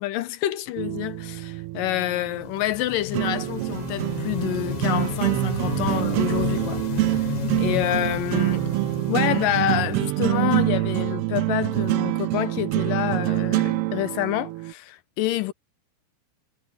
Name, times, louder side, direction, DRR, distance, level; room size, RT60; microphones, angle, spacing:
voice 1, 0.0-7.2 7.6-8.7 9.1-15.5, left 13 dB, 75° left, 2.1 m, -27 dB
sound 1, 0.8-14.7, right 19 dB, 85° right, 2.6 m, -26 dB
sound 2, 2.1-10.9, left 15 dB, 60° left, 2.2 m, -34 dB
omnidirectional pair, 4.7 m